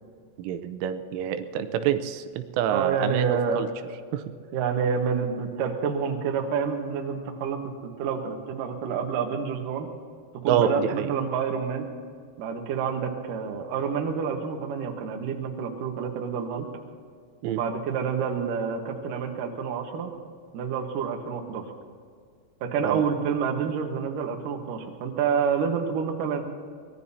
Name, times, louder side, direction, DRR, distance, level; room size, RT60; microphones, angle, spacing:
voice 1, 0.4-3.7 4.1-4.2 10.5-11.1 17.4-17.6 22.8-23.0, right 9 dB, 90° right, 10 dB, 3.2 m, -27 dB
voice 2, 2.7-3.6 4.5-9.9 10.4-11.9 12.4-16.7 17.4-20.1 20.5-21.7 22.6-26.4, right 6 dB, 65° right, 2 dB, 2.2 m, -28 dB
24.0 x 19.5 x 2.8 m, 2.1 s
omnidirectional pair, 5.7 m